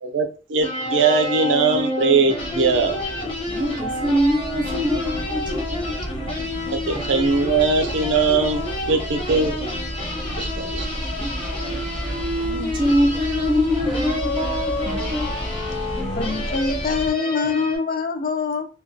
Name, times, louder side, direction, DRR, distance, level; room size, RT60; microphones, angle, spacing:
voice 1, 0.0-3.3 6.7-8.6 8.9-9.6 10.4-10.9, right 4 dB, 80° right, 0.4 m, -21 dB
sound 1, 0.6-17.8, left 2 dB, 30° left, 0.7 m, -29 dB
sound 2, 2.4-17.1, equal, 85° left, 1.0 m, -32 dB
voice 2, 3.5-6.1 10.9-11.4 12.4-15.4, equal, 25° right, 0.4 m, -24 dB
voice 3, 16.2-18.7, left 4 dB, 50° left, 0.3 m, -24 dB
2.2 x 2.1 x 2.6 m
head